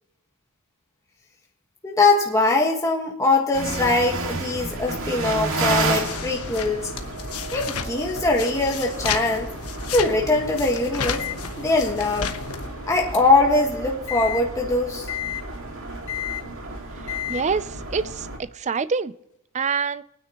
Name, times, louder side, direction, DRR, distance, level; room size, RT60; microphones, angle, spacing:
voice 1, 1.8-6.9 7.5-9.5 9.9-11.2 11.6-12.4 12.9-15.1, left 2 dB, 15° left, 1.5 m, -22 dB
sound 1, 3.5-18.4, right 2 dB, 60° right, 2.2 m, -32 dB
sound 2, 4.6-12.7, left 6 dB, 80° left, 1.1 m, -34 dB
Microwave oven, 11.2-13.5 14.1-14.4 15.1-15.4 16.1-16.4 17.1-17.4, left 13 dB, 55° left, 1.4 m, -33 dB
voice 2, 17.3-19.1 19.5-20.0, right 5 dB, 30° right, 0.5 m, -26 dB
24.0 x 9.6 x 3.0 m
head